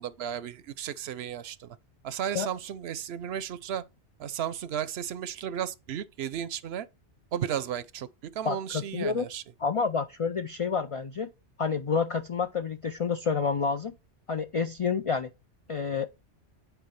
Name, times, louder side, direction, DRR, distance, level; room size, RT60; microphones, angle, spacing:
voice 1, 0.0-1.8 2.0-3.8 4.2-6.9 7.3-9.4, right 9 dB, 70° right, 0.8 m, -34 dB
voice 2, 8.4-9.3 9.6-11.3 11.6-13.9 14.3-15.3 15.7-16.1, left 5 dB, 60° left, 0.3 m, -29 dB
9.1 x 4.5 x 3.2 m
omnidirectional pair, 1.2 m